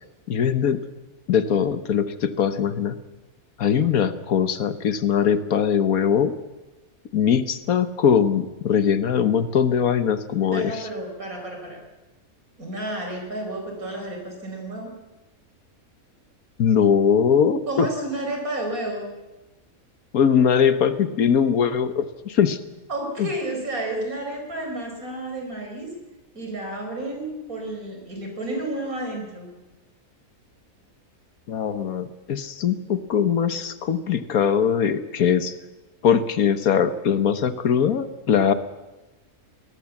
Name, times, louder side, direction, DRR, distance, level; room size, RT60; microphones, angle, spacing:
voice 1, 0.3-0.8 1.3-3.0 3.6-6.3 7.1-10.9 16.6-17.9 20.1-22.6 23.2-23.3 31.5-35.5 36.0-38.5, left 7 dB, 75° left, 12 dB, 1.6 m, -21 dB
voice 2, 10.5-11.8 12.6-14.9 17.7-19.1 22.9-26.0 26.3-29.5, right 1 dB, 75° right, 3 dB, 5.4 m, -31 dB
22.5 x 18.5 x 7.2 m, 1.1 s
omnidirectional pair, 1.5 m